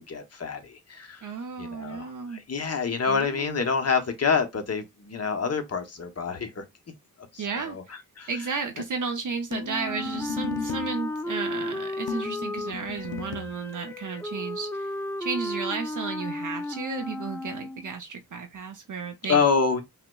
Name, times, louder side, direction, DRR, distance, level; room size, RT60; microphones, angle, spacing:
voice 1, 0.1-1.3 1.6-6.6 7.3-7.8 8.2-8.3 19.3-19.8, left 5 dB, 45° left, 0.8 m, -27 dB
voice 2, 1.2-2.4 3.1-3.7 7.4-8.0 8.3-14.9 15.2-19.4, right 5 dB, 55° right, 0.5 m, -33 dB
sound 1, 9.5-11.0 12.1-13.6, left 6 dB, 85° left, 0.6 m, -36 dB
Wind instrument woodwind instrument, 9.7-18.0, left 1 dB, 5° left, 0.4 m, -34 dB
5.6 x 2.0 x 2.2 m
wide cardioid pair, 90°, 36 cm